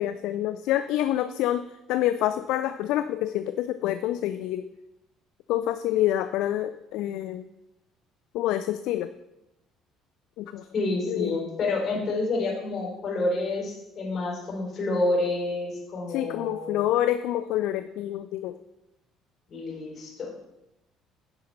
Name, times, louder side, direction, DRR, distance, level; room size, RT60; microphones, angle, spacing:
voice 1, 0.0-4.7 5.5-7.5 8.3-9.1 10.4-10.7 11.1-11.4 16.1-18.6, left 13 dB, 60° left, 11 dB, 0.3 m, -27 dB
voice 2, 10.7-16.8 19.5-20.5, left 2 dB, 40° left, -2 dB, 3.9 m, -29 dB
16.0 x 5.5 x 3.2 m, 0.92 s
figure-of-eight pair, 55°, 0 cm